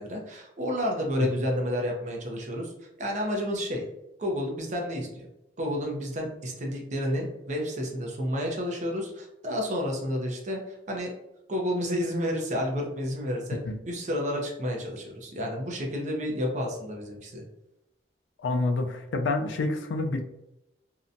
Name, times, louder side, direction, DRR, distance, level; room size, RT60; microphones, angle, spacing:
voice 1, 0.0-3.8 4.2-5.3 5.6-11.1 11.5-13.6 13.9-17.4, equal, 40° right, 0 dB, 0.5 m, -30 dB
voice 2, 18.4-20.2, left 2 dB, 85° left, 5 dB, 0.4 m, -28 dB
2.7 x 2.1 x 2.5 m, 0.89 s
head